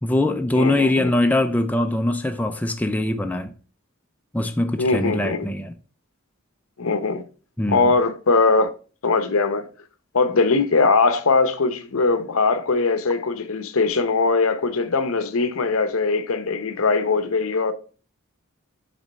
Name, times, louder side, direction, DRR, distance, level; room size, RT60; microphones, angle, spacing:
voice 1, 0.0-3.5 4.3-5.7 7.6-7.9, left 1 dB, 5° left, 0.4 m, -22 dB
voice 2, 0.5-1.1 4.8-5.5 6.8-7.2 7.7-8.7 9.0-9.7 10.1-17.7, left 4 dB, 70° left, 0.8 m, -21 dB
7.1 x 3.0 x 5.3 m
head